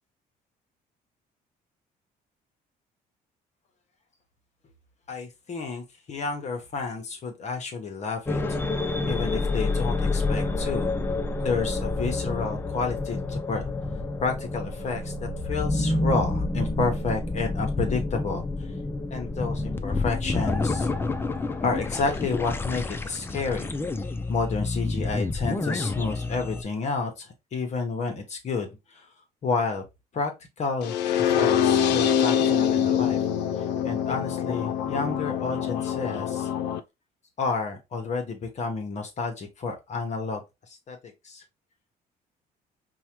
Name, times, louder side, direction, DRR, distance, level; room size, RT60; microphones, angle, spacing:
voice 1, 5.1-8.4 9.1-13.7 14.2-15.1 15.4-18.5 19.1-20.9 21.6-23.8 24.3-29.1 29.4-29.8 30.1-30.3 30.6-33.2 33.6-36.5 37.4-41.4, left 4 dB, 45° left, 0.9 m, -30 dB
sound 1, 8.2-26.6, left 2 dB, 15° left, 0.4 m, -28 dB
sound 2, 30.8-36.8, left 9 dB, 85° left, 0.4 m, -24 dB
4.6 x 2.2 x 2.9 m
cardioid pair, 110°, 17 cm